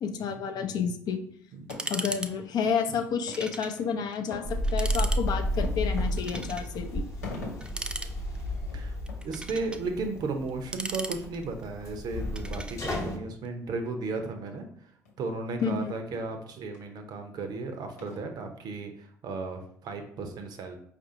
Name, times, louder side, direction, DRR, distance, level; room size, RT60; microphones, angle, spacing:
voice 1, 0.0-1.2 1.9-7.1 15.6-15.9, left 6 dB, 50° left, 6 dB, 0.5 m, -30 dB
sound 1, 1.5-2.1 2.5-2.6 3.3-3.4 3.8-3.9 4.3-7.9 8.3-8.4 8.6-8.8 9.1-9.2 9.6-9.7 10.1-10.2 10.7-10.8 11.2-11.4 11.8-11.9 12.5-12.6 13.1-13.2 13.9-14.1 14.5-14.6 15.0-15.1 15.6-15.7 16.1-16.2 16.7-16.9 17.5-17.6 18.0-18.5, left 3 dB, 90° left, 0.7 m, -43 dB
sound 2, 1.7-2.3 2.6-2.7 3.3-3.8 4.1-4.2 4.6-5.2 6.2-6.7 7.6-8.5 9.1-9.8 10.5-11.6 12.4-13.0, right 2 dB, 10° right, 0.3 m, -37 dB
sound 3, 4.4-13.2, equal, 35° left, 0.9 m, -32 dB
voice 2, 9.2-14.7 15.2-20.8, right 3 dB, 55° right, 6 dB, 0.6 m, -35 dB
4.6 x 2.5 x 2.7 m, 0.64 s
hypercardioid pair, 55°, 8 cm